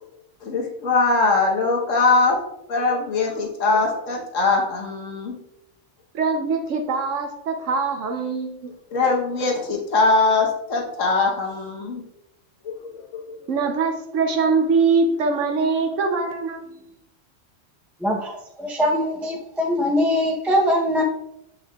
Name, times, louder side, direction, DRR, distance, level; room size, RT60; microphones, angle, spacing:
voice 1, 0.4-2.4 2.7-5.4 8.7-12.0 12.6-13.2, left 3 dB, 85° left, 1.4 m, -21 dB
voice 2, 6.1-8.7 13.5-16.8, right 4 dB, 80° right, 1.0 m, -23 dB
voice 3, 18.0-21.0, left 1 dB, ahead, 0.5 m, -22 dB
7.2 x 6.2 x 2.3 m
omnidirectional pair, 1.3 m